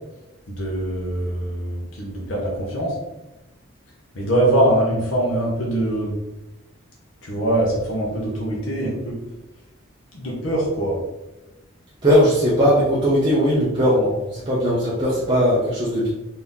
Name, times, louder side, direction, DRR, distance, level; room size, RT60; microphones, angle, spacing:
voice 1, 0.5-3.0 4.1-6.1 7.2-9.2 10.1-11.0, right 1 dB, 75° left, -3 dB, 1.0 m, -23 dB
voice 2, 12.0-16.1, equal, 20° right, -7 dB, 0.7 m, -19 dB
4.0 x 2.9 x 3.6 m, 0.99 s
head